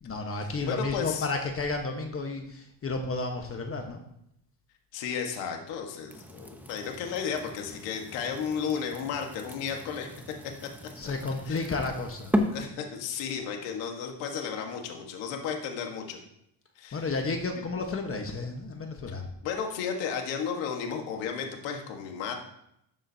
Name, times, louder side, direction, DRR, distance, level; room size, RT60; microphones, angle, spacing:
voice 1, 0.0-4.0 10.9-12.4 16.9-19.2, left 3 dB, 30° left, 3 dB, 1.2 m, -32 dB
voice 2, 0.7-1.3 4.9-10.2 11.5-11.6 12.5-16.2 16.8-17.0 19.4-22.3, left 7 dB, 85° left, 3 dB, 1.5 m, -33 dB
sound 1, 6.1-12.7, equal, 5° right, 0.9 m, -36 dB
12.5 x 7.3 x 2.8 m, 0.77 s
cardioid pair, 105°, 44 cm